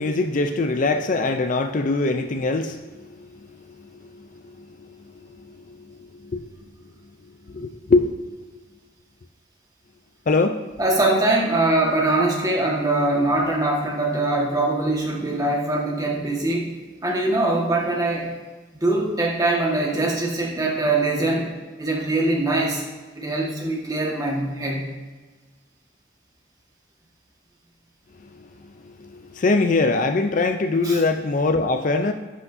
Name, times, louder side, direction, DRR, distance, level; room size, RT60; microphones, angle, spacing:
voice 1, 0.0-3.4 3.7-5.0 5.4-6.5 7.5-8.3 10.3-10.6 28.3-28.5 29.0-32.1, left 3 dB, 40° left, 7 dB, 0.4 m, -23 dB
voice 2, 10.8-16.7 17.0-18.3 18.8-21.5 21.8-22.8 23.1-24.9 30.8-31.0, right 2 dB, 20° right, -2 dB, 1.5 m, -22 dB
11.0 x 8.4 x 2.7 m, 1.3 s
head